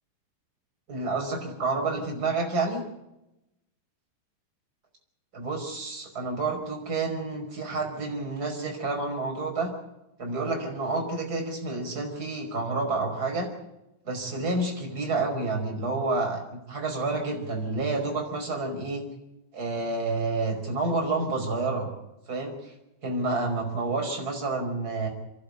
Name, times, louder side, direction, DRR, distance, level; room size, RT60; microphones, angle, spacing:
voice 1, 0.9-2.8 5.3-9.7 10.2-13.5 14.0-19.0 19.5-21.9 22.3-22.7 23.0-25.1, right 3 dB, 20° right, 1 dB, 5.3 m, -29 dB
28.0 x 11.5 x 9.8 m, 0.91 s
omnidirectional pair, 5.1 m